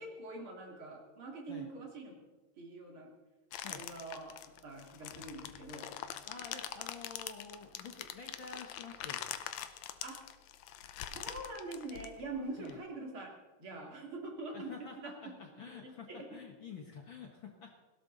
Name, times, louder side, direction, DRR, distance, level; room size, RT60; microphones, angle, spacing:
voice 1, 0.0-2.2 2.6-3.1 3.6-4.3 4.6-5.9 10.0-10.2 11.1-13.3 13.6-15.1 15.7-16.4, right 2 dB, 45° right, 0 dB, 3.4 m, -44 dB
sound 1, 3.5-12.7, left 11 dB, 70° left, 1.9 m, -44 dB
voice 2, 6.3-9.2 12.6-12.8 14.5-17.7, left 5 dB, 50° left, 2 dB, 1.8 m, -49 dB
19.0 x 16.5 x 4.0 m, 1.2 s
omnidirectional pair, 3.6 m